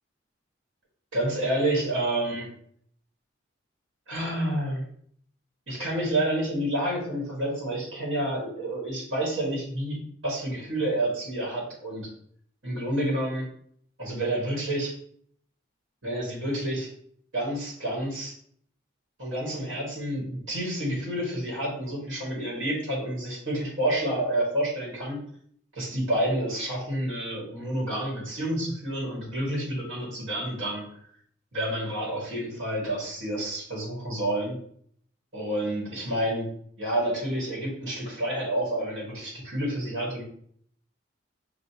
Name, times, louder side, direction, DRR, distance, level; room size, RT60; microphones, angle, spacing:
voice 1, 1.1-2.5 4.1-4.8 5.7-10.0 10.2-12.1 12.6-13.5 14.0-15.0 16.0-16.9 17.3-18.3 19.2-25.2 25.7-30.9 31.5-34.6 35.3-36.5 36.8-40.2, right 1 dB, 80° right, -4 dB, 1.6 m, -29 dB
6.3 x 2.4 x 2.8 m, 0.64 s
head